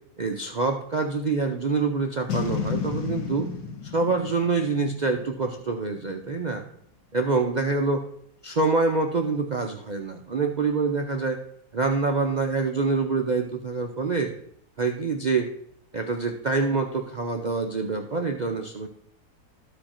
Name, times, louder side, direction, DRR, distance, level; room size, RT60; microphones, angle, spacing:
voice 1, 0.2-3.5 3.8-6.6 7.1-8.0 8.4-11.4 11.7-14.3 14.8-15.5 15.9-18.9, right 4 dB, 60° right, 3 dB, 0.4 m, -26 dB
Boom, 2.3-5.6, left 7 dB, 80° left, 1.8 m, -31 dB
13.0 x 5.1 x 4.3 m, 0.67 s
omnidirectional pair, 1.7 m